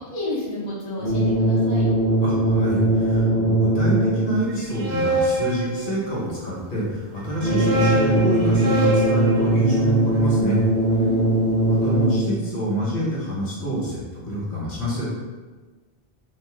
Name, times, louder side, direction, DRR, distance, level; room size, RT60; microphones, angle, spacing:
voice 1, 0.1-1.8 10.9-11.5, left 2 dB, 35° left, -6 dB, 0.6 m, -30 dB
sound 1, 1.0-4.4 7.4-12.4, right 1 dB, 10° right, 0.7 m, -20 dB
voice 2, 2.2-10.6 11.6-15.1, equal, 55° left, -6 dB, 1.0 m, -27 dB
sound 2, 4.5-6.4 7.2-11.3, right 1 dB, 65° right, 0.7 m, -27 dB
2.5 x 2.2 x 3.6 m, 1.3 s
omnidirectional pair, 1.1 m